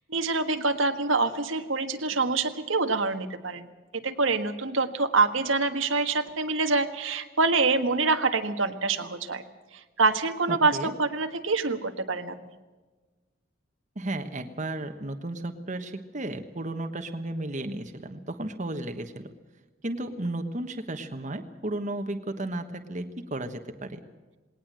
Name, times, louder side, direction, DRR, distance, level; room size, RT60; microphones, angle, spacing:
voice 1, 0.1-3.7 3.9-9.4 10.0-12.3, right 3 dB, 75° right, 7 dB, 1.6 m, -26 dB
voice 2, 10.5-10.9 13.9-19.3 19.8-24.0, right 1 dB, 35° right, 7 dB, 1.3 m, -34 dB
20.0 x 18.5 x 7.6 m, 1.2 s
head